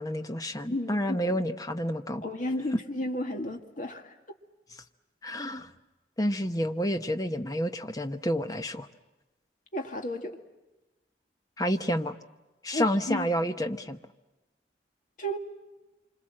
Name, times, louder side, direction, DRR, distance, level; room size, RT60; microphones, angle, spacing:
voice 1, 0.0-2.2 5.2-5.7 6.2-8.9 11.6-12.2 12.6-14.0, equal, 20° left, 1.0 m, -29 dB
voice 2, 0.7-1.4 2.2-4.1 9.7-10.3 12.7-13.3 15.2-15.4, left 1 dB, 45° left, 2.0 m, -33 dB
27.0 x 26.0 x 7.7 m
head